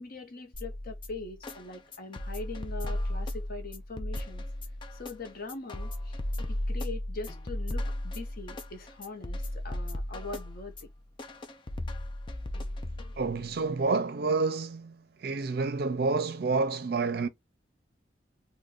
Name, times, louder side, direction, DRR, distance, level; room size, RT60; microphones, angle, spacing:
voice 1, 0.0-4.4 4.9-6.2 6.5-10.9, left 3 dB, 50° left, 0.7 m, -42 dB
sound 1, 0.5-13.5, left 1 dB, 25° left, 0.4 m, -36 dB
voice 2, 13.2-15.0 15.2-17.3, right 4 dB, 55° right, 0.5 m, -28 dB
2.4 x 2.2 x 3.5 m
head